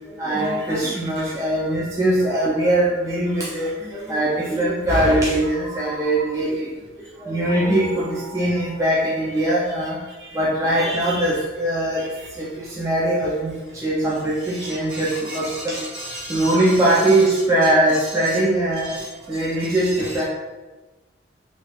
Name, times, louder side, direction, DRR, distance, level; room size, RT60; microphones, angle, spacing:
voice 1, 0.0-6.7 7.0-10.0 10.3-12.0 12.3-15.8 16.3-18.9 19.3-20.2, right 1 dB, 15° right, -7 dB, 0.4 m, -21 dB
voice 2, 7.5-8.4 10.2-10.4 10.8-11.3 12.0-12.3 14.4-17.2 18.2-18.4 18.8-19.8 20.2-20.3, equal, 65° right, -6 dB, 1.1 m, -35 dB
3.1 x 3.1 x 2.4 m, 1.2 s
head